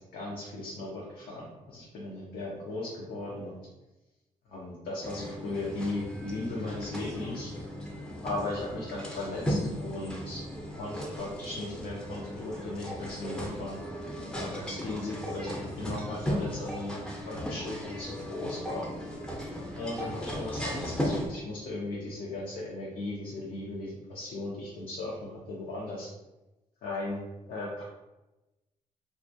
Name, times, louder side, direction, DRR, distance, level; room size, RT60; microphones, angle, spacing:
voice 1, 0.1-3.6 4.5-7.5 8.2-10.4 10.8-13.8 14.3-17.0 17.3-18.9 19.8-26.1 26.8-27.2 27.5-27.8, left 2 dB, 70° left, -5 dB, 0.6 m, -37 dB
sound 1, 5.0-21.3, equal, 5° left, 0.6 m, -36 dB
2.3 x 2.1 x 2.6 m, 1.0 s
supercardioid pair, 60°, 15 cm